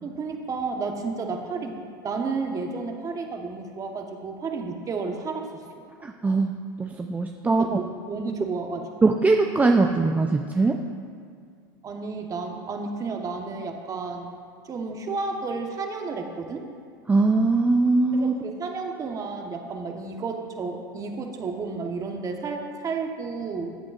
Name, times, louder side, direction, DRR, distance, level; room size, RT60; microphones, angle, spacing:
voice 1, 0.0-5.6 7.6-8.9 11.8-14.3 14.6-16.6 18.1-23.8, right 4 dB, 30° right, 3 dB, 1.1 m, -32 dB
voice 2, 6.0-6.5 6.8-7.8 9.0-10.8 17.1-18.3, right 3 dB, 15° right, 3 dB, 0.4 m, -21 dB
14.0 x 8.5 x 2.5 m, 2.2 s
hypercardioid pair, 105°, 12 cm